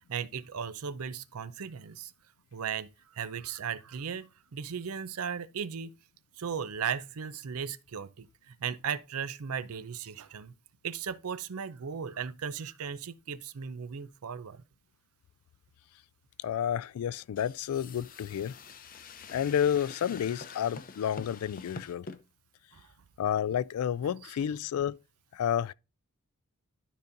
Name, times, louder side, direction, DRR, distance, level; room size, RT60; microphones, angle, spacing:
voice 1, 0.1-2.1 2.5-5.9 6.4-10.5 10.8-14.6 22.7-22.8 24.2-24.3, right 7 dB, 80° right, 0.5 m, -37 dB
voice 2, 16.4-18.5 19.3-22.1 23.2-25.0 25.3-25.7, left 9 dB, 75° left, 0.3 m, -30 dB
sound 1, 17.4-22.2, left 4 dB, 40° left, 0.6 m, -46 dB
12.0 x 5.1 x 2.6 m
head